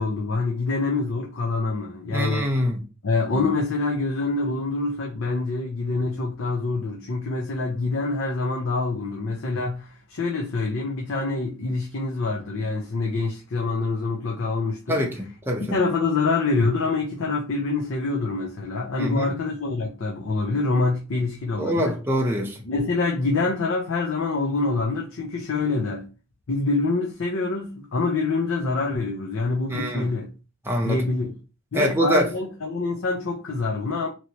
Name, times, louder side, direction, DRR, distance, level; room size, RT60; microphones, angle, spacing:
voice 1, 0.0-2.5 3.0-15.1 15.6-21.9 22.6-26.1 26.5-30.3 30.8-31.3 31.7-34.1, left 3 dB, 85° left, 0.6 m, -26 dB
voice 2, 2.1-2.8 3.3-3.5 14.9-15.6 19.0-19.3 21.6-22.6 29.7-30.1 30.7-31.0 31.7-32.3, equal, 10° right, 0.6 m, -24 dB
3.1 x 2.9 x 2.8 m
head